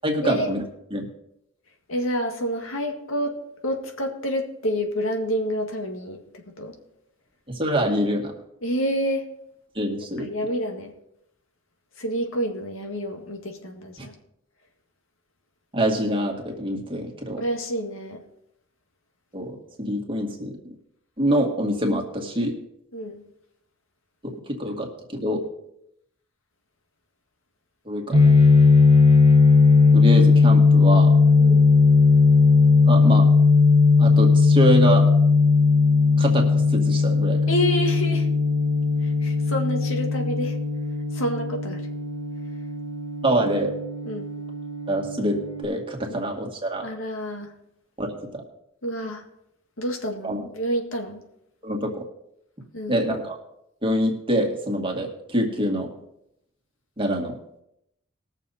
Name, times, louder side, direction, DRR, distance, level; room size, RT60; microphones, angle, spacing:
voice 1, 0.0-0.6 0.9-1.1 7.5-8.3 9.8-10.3 14.0-14.1 15.7-17.4 19.3-20.5 21.2-22.5 24.2-25.4 27.9-28.3 29.9-31.1 32.9-33.3 34.0-35.0 36.2-37.4 43.2-43.7 44.9-46.9 48.0-48.4 50.2-50.4 51.6-51.9 52.9-53.4 53.8-55.9 57.0-57.4, equal, 25° right, 1 dB, 2.0 m, -25 dB
voice 2, 1.9-3.4 3.6-6.2 6.6-6.7 8.6-9.3 10.2-10.9 12.0-14.1 17.4-18.2 22.9-23.3 31.4-31.7 37.5-38.3 39.0-40.6 41.1-41.8 44.0-44.3 46.1-46.3 46.8-47.5 48.8-49.2 49.8-51.2 52.7-53.0 55.6-55.7, equal, 90° left, 3 dB, 2.0 m, -28 dB
sound 1, 28.1-45.6, left 4 dB, 50° left, 3.5 m, -18 dB
20.0 x 6.8 x 4.2 m, 0.79 s
head